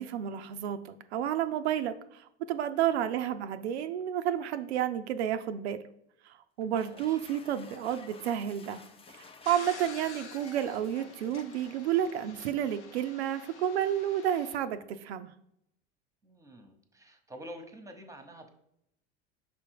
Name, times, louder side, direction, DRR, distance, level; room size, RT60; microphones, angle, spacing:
voice 1, 0.0-5.8 6.3-8.8 9.1-15.3, right 10 dB, 70° right, 10 dB, 0.5 m, -31 dB
voice 2, 2.9-3.2 6.8-7.2 16.2-18.5, equal, 10° right, 6 dB, 1.0 m, -48 dB
sound 1, 6.6-12.2, left 4 dB, 15° left, 0.5 m, -54 dB
sound 2, 9.4-14.6, left 5 dB, 80° left, 0.8 m, -48 dB
5.9 x 3.4 x 4.6 m, 0.77 s
hypercardioid pair, 75°, 34 cm